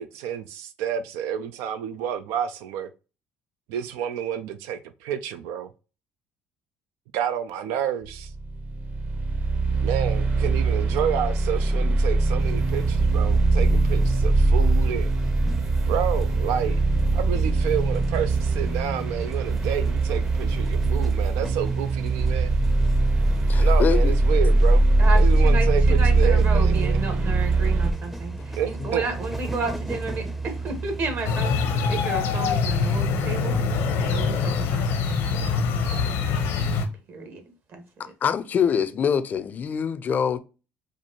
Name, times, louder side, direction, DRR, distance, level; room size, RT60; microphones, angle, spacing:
voice 1, 0.0-2.9 3.7-5.7 7.1-8.3 9.8-15.1 15.9-22.5 23.6-27.0 28.6-29.0, right 9 dB, 90° right, 0.3 m, -29 dB
sound 1, 8.1-27.9, right 2 dB, 40° right, 0.8 m, -21 dB
sound 2, 12.4-31.8, right 3 dB, 5° right, 0.5 m, -33 dB
voice 2, 23.5-24.1 28.8-28.9 38.0-40.4, left 7 dB, 40° left, 0.4 m, -25 dB
voice 3, 25.0-33.6 34.0-36.7 37.1-37.4 37.7-38.1, right 4 dB, 55° right, 1.4 m, -33 dB
sound 3, 31.2-36.9, left 5 dB, 80° left, 0.8 m, -24 dB
4.4 x 2.5 x 2.8 m
cardioid pair, 100°, 4 cm